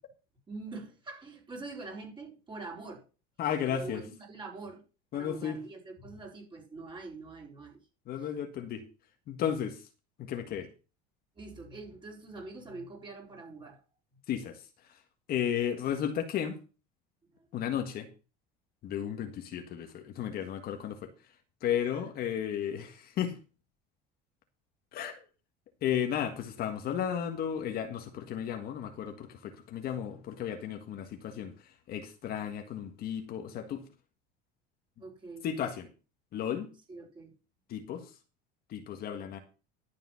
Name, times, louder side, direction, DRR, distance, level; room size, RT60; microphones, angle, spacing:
voice 1, 0.5-3.1 3.7-4.8 5.1-7.8 8.2-8.3 11.3-13.8 17.3-17.5 21.9-22.0 35.0-35.5 36.9-37.4, right 3 dB, 20° right, 4.6 m, -44 dB
voice 2, 3.4-4.1 5.1-5.6 8.1-8.8 9.3-9.8 10.2-10.7 14.3-14.6 15.3-16.6 17.5-18.1 18.8-21.1 21.6-23.4 24.9-25.2 25.8-33.8 35.4-35.9 36.3-36.7 37.7-38.1 38.7-39.4, left 9 dB, 45° left, 1.7 m, -34 dB
12.0 x 7.3 x 5.7 m
cardioid pair, 130°, 21 cm